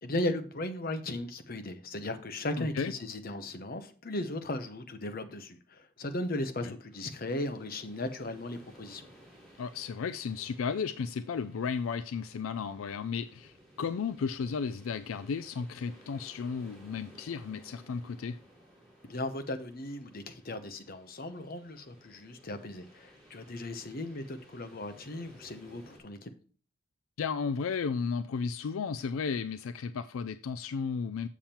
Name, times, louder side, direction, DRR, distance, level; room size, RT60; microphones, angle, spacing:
voice 1, 0.0-9.1 19.0-26.3, left 1 dB, 45° left, 0.9 m, -37 dB
voice 2, 2.6-2.9 6.6-6.7 9.6-18.4 27.2-31.3, left 5 dB, 75° left, 0.4 m, -34 dB
sound 1, 6.9-26.0, equal, ahead, 4.8 m, -58 dB
7.2 x 7.2 x 4.4 m
head